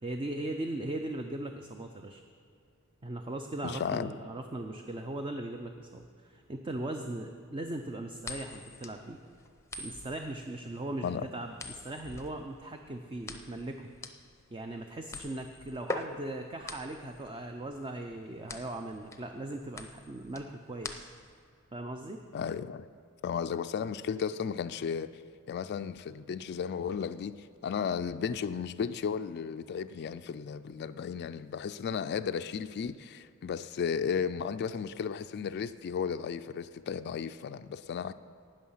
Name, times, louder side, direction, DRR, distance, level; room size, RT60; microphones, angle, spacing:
voice 1, 0.0-2.2 3.0-9.2 9.8-13.9 14.5-21.1 21.7-22.2, right 1 dB, 25° right, 0.5 m, -39 dB
voice 2, 3.6-4.1 11.0-11.3 22.3-22.9 23.2-25.2 25.5-38.1, left 6 dB, 50° left, 0.3 m, -34 dB
sound 1, 8.2-21.4, left 2 dB, 15° left, 0.7 m, -43 dB
18.0 x 6.3 x 5.6 m
head